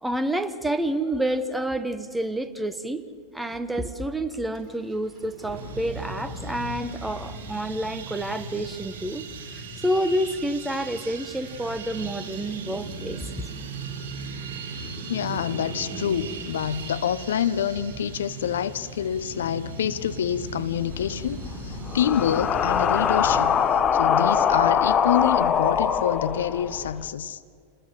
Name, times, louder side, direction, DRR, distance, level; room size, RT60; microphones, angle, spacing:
voice 1, 0.0-3.0 3.3-13.3, right 1 dB, 5° right, 1.3 m, -29 dB
sound 1, 4.5-23.5, right 2 dB, 25° right, 6.4 m, -39 dB
sound 2, 5.6-23.8, right 7 dB, 55° right, 6.1 m, -44 dB
voice 2, 15.1-23.6 23.9-27.4, left 9 dB, 65° left, 0.8 m, -27 dB
sound 3, 20.9-27.0, left 7 dB, 25° left, 1.4 m, -23 dB
29.0 x 20.5 x 7.7 m
figure-of-eight pair, 90°, 0 cm